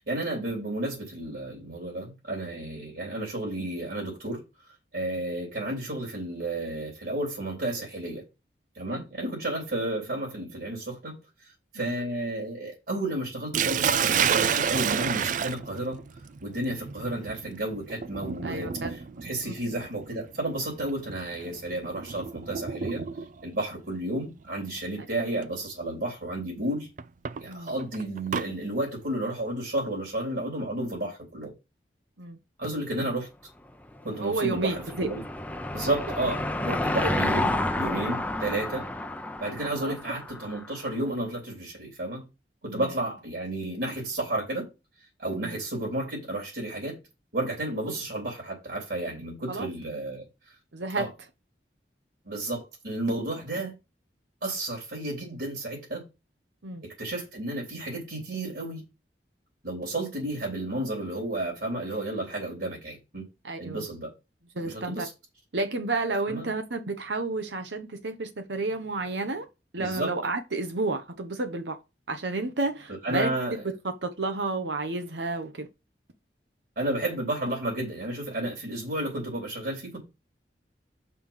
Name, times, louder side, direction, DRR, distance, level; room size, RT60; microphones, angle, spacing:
voice 1, 0.1-4.4 4.9-8.2 8.7-16.0 16.4-23.0 23.4-26.9 27.4-31.5 32.6-33.3 34.0-35.2 35.7-38.9 39.4-42.2 42.6-44.7 45.2-47.0 47.3-50.5 50.9-51.1 52.2-53.7 54.4-56.1 56.8-58.8 59.6-63.3 63.6-64.1 64.6-65.1 66.3-66.5 69.8-70.1 72.9-73.6 76.7-80.0, right 1 dB, 70° right, 3.5 m, -32 dB
Sink (filling or washing), 13.5-23.5 24.6-24.9 25.4-25.5 27.0-28.5, right 7 dB, 45° right, 0.4 m, -30 dB
voice 2, 18.4-18.9 19.4-19.5 27.5-27.7 32.2-32.4 34.2-35.1 37.0-37.1 39.8-39.9 42.6-42.9 45.2-45.6 49.5-49.7 50.7-51.1 56.6-56.8 63.4-63.9 64.5-65.1 65.5-69.5 69.7-71.8 72.1-73.3 74.0-75.7, right 3 dB, 85° right, 1.0 m, -31 dB
Car passing by / Engine, 33.9-40.7, left 1 dB, 10° left, 0.6 m, -30 dB
5.6 x 4.8 x 5.7 m
head